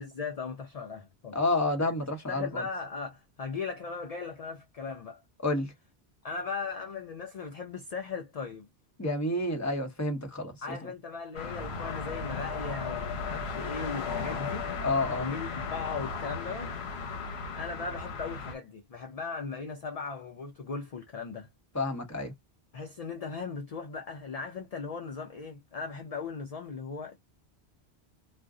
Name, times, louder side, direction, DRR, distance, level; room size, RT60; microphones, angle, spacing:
voice 1, 0.0-1.4 1.8-1.9 2.3-5.2 6.2-8.7 10.6-14.7 15.2-16.7 17.5-21.5 22.7-27.2, left 5 dB, 45° left, 0.6 m, -38 dB
voice 2, 1.3-2.6 5.4-5.7 9.0-10.9 14.8-15.3 21.7-22.3, left 2 dB, 15° left, 0.9 m, -29 dB
sound 1, 11.3-18.5, left 4 dB, 75° left, 1.0 m, -36 dB
2.5 x 2.1 x 3.6 m
omnidirectional pair, 1.1 m